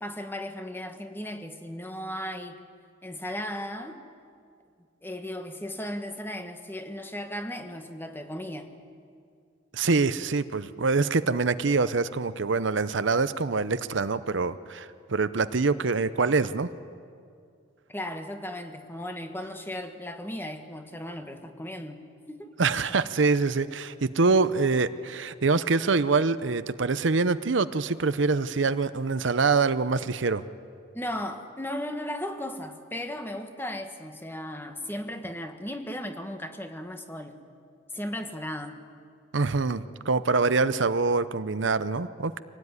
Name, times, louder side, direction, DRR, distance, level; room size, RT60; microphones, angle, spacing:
voice 1, 0.0-2.7 3.0-4.0 5.0-8.7 17.9-22.5 30.9-37.4 37.9-38.8, left 1 dB, 10° left, 6 dB, 1.5 m, -36 dB
voice 2, 9.7-16.7 22.6-30.4 39.3-42.4, right 4 dB, 70° right, 13 dB, 0.7 m, -25 dB
25.0 x 18.0 x 9.7 m, 2.4 s
head